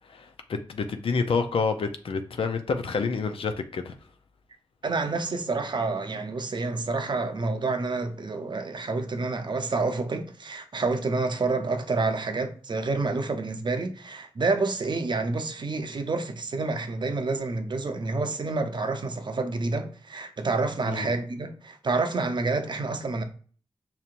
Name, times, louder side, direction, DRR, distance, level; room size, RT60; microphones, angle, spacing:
voice 1, 0.7-3.9 20.9-21.1, left 4 dB, 70° left, 0.5 m, -28 dB
voice 2, 4.8-23.2, right 3 dB, 50° right, 0.6 m, -28 dB
5.5 x 2.9 x 2.5 m
cardioid pair, 45°, 10 cm